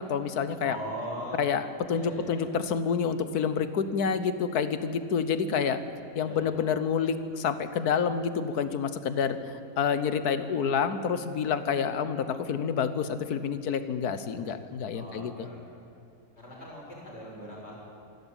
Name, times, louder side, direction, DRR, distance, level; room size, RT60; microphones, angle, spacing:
voice 1, 0.0-0.8 1.4-5.8 6.1-15.5, left 6 dB, 85° left, 11 dB, 1.6 m, -28 dB
voice 2, 0.6-1.4 1.9-2.5 6.2-6.6 14.9-15.8 16.4-17.8, right 1 dB, 45° left, -4 dB, 6.3 m, -40 dB
26.0 x 12.5 x 9.0 m, 2.6 s
omnidirectional pair, 1.6 m